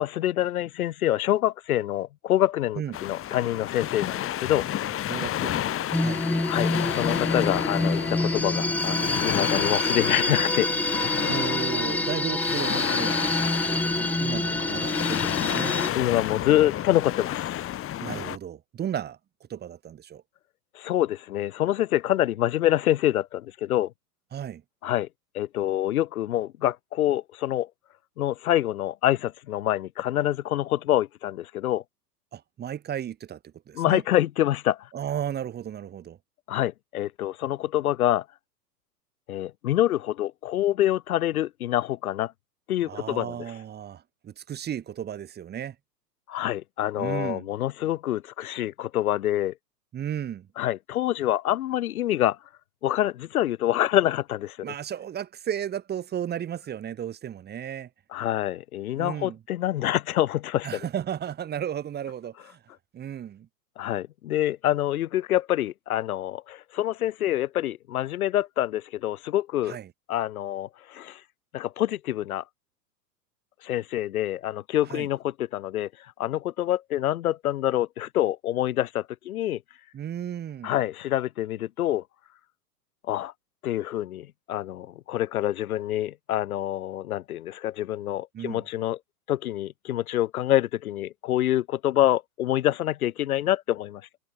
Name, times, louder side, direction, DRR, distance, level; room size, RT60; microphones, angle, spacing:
voice 1, 0.0-4.7 6.5-10.7 15.9-17.7 20.7-23.9 24.8-25.1 25.3-27.7 28.2-31.8 33.7-34.9 36.5-38.2 39.3-42.3 42.7-43.4 46.3-49.5 50.6-52.4 52.8-54.7 58.1-60.8 63.8-69.8 70.1-71.2 71.5-72.4 73.6-75.9 76.2-79.6 80.6-82.0 83.1-83.3 83.6-89.0 89.3-94.0, left 13 dB, 60° left, 1.4 m, -26 dB
sound 1, 2.9-18.4, left 12 dB, 25° left, 4.2 m, -31 dB
voice 2, 5.1-6.3 11.3-15.7 18.0-19.2 19.5-20.2 24.3-24.6 32.3-33.4 33.7-34.0 34.9-36.2 42.9-45.8 47.0-47.5 49.9-50.5 54.6-57.9 59.0-59.4 60.6-62.6 62.9-63.5 69.7-69.9 74.9-75.1 79.9-80.7 88.3-88.6, right 9 dB, 20° right, 2.0 m, -34 dB
sound 2, 5.9-15.9, left 1 dB, 5° left, 2.0 m, -27 dB
figure-of-eight pair, 105°, 49 cm